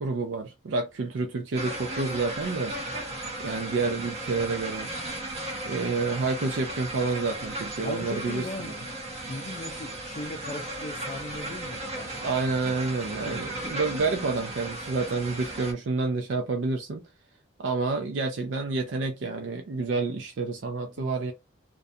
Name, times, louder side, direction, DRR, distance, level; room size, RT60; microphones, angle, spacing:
voice 1, 0.0-2.7 3.4-4.9 5.6-8.7 12.2-17.0 17.6-21.3, right 3 dB, 75° right, 0.4 m, -29 dB
sound 1, 1.5-15.7, right 1 dB, 35° right, 0.8 m, -36 dB
voice 2, 2.9-3.2 5.6-5.8 7.8-12.3 13.2-13.8 21.0-21.1, left 2 dB, 40° left, 0.4 m, -39 dB
2.5 x 2.2 x 2.6 m
head